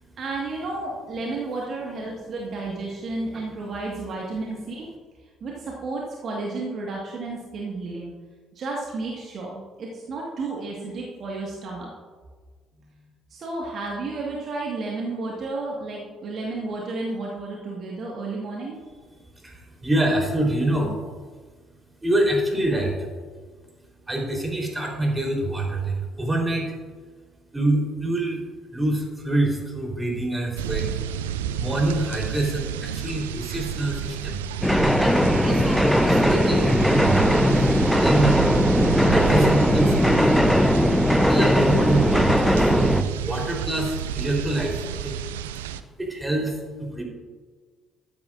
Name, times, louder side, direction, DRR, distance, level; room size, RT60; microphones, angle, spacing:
voice 1, 0.2-4.8 5.4-8.1 8.6-11.9 13.3-18.8, right 3 dB, 45° right, -2 dB, 1.8 m, -32 dB
voice 2, 19.3-21.0 22.0-23.1 24.0-26.7 27.5-28.4 28.7-30.9 31.6-34.4 35.0-38.5 39.0-40.5 41.2-45.2 46.0-47.0, right 1 dB, 15° right, 0 dB, 3.9 m, -26 dB
sound 1, 30.6-45.8, right 9 dB, 75° right, 0.4 m, -30 dB
sound 2, 34.6-43.0, equal, ahead, 0.7 m, -19 dB
14.5 x 12.5 x 2.6 m, 1.5 s
figure-of-eight pair, 45°, 0 cm